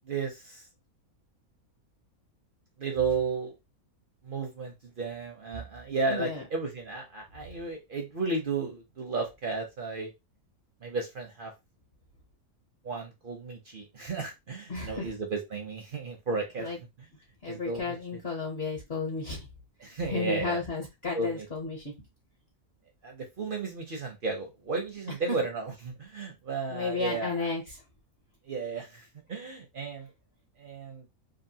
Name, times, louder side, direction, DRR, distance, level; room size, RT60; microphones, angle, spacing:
voice 1, 0.1-0.6 2.8-3.5 4.2-10.1 10.8-11.5 12.8-16.7 17.5-18.0 19.8-20.6 21.1-21.5 23.0-27.5 28.5-30.1 30.6-31.1, right 4 dB, 55° right, 2 dB, 0.6 m, -33 dB
voice 2, 6.1-6.4 14.7-15.1 16.6-16.8 17.4-19.5 20.1-21.9 25.3-25.4 26.7-27.8, left 4 dB, 50° left, 0 dB, 0.9 m, -33 dB
2.8 x 2.4 x 2.7 m, 0.22 s
omnidirectional pair, 1.5 m